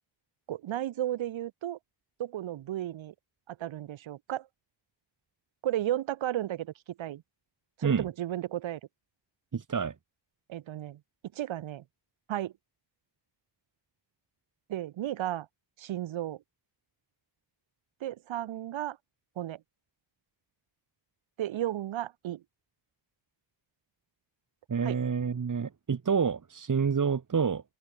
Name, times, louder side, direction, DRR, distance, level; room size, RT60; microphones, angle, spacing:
voice 1, 0.5-1.8 2.2-3.1 3.5-4.5 5.6-6.7 7.0-7.2 7.8-8.8 10.5-11.0 11.3-11.8 12.3-12.5 14.7-15.5 15.8-16.4 18.0-19.0 19.4-19.6 21.4-22.4 24.8-25.0, right 12 dB, 85° right, 2.4 m, -34 dB
voice 2, 9.5-9.9 24.7-27.6, right 6 dB, 40° right, 5.3 m, -28 dB
open air
cardioid pair, 115°, 45 cm